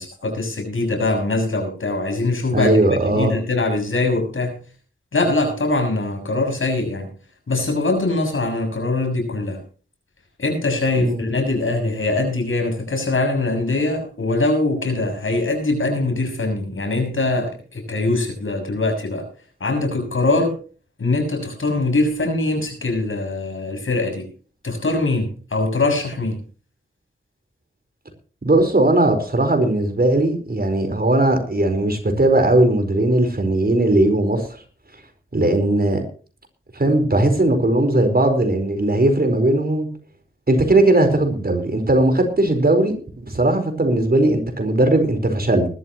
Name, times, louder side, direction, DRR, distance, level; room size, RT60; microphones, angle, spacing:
voice 1, 0.0-2.7 3.1-4.6 5.1-7.1 7.5-9.6 10.4-19.2 19.6-20.5 21.0-24.2 24.6-26.4, left 2 dB, 85° left, 4 dB, 6.5 m, -22 dB
voice 2, 2.5-3.3 11.0-11.2 28.4-34.5 35.3-36.0 36.7-39.9 40.5-45.7, right 1 dB, 50° right, 7 dB, 4.5 m, -18 dB
20.0 x 13.0 x 3.1 m, 0.39 s
wide cardioid pair, 60°, 20 cm